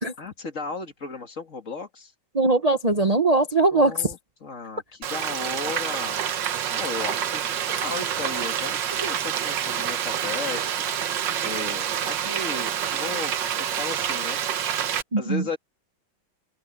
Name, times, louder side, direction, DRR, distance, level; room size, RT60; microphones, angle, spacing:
voice 1, 0.2-2.1 3.7-6.2 6.7-11.1 11.4-14.8 15.2-15.6, left 4 dB, 45° left, 2.3 m, -35 dB
voice 2, 2.3-4.1 15.1-15.4, right 2 dB, 25° right, 0.9 m, -21 dB
Frying (food), 5.0-15.0, right 9 dB, 80° right, 1.8 m, -27 dB
open air
omnidirectional pair, 2.0 m